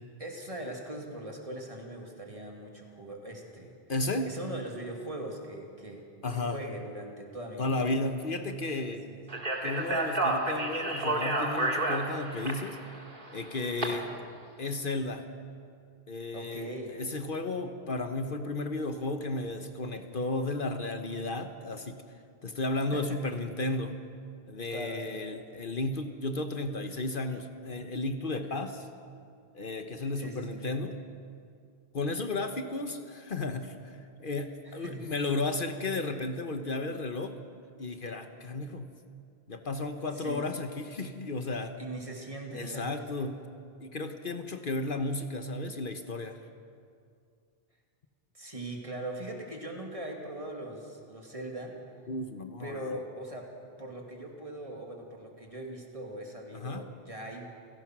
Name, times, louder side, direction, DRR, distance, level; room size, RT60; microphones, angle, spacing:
voice 1, 0.2-3.7 4.2-6.0 6.3-7.8 9.0-9.2 13.8-14.0 16.3-17.0 22.9-23.2 24.7-25.2 28.3-28.6 30.2-30.6 34.6-35.1 40.1-40.4 41.8-43.3 48.3-51.8 52.6-53.5 53.8-57.5, right 1 dB, 30° right, 1 dB, 2.7 m, -41 dB
voice 2, 3.9-4.3 6.2-6.6 7.6-9.1 9.6-12.8 13.3-14.1 14.6-15.3 16.1-22.0 22.4-24.0 24.5-28.8 29.5-30.9 31.9-37.4 37.8-38.9 39.5-41.8 42.5-43.4 43.8-46.4 52.1-53.0 56.5-56.8, left 2 dB, 55° left, 7 dB, 1.2 m, -33 dB
Speech, 9.3-13.9, right 2 dB, 55° right, 2.5 m, -30 dB
29.0 x 17.5 x 6.1 m, 2.3 s
omnidirectional pair, 1.1 m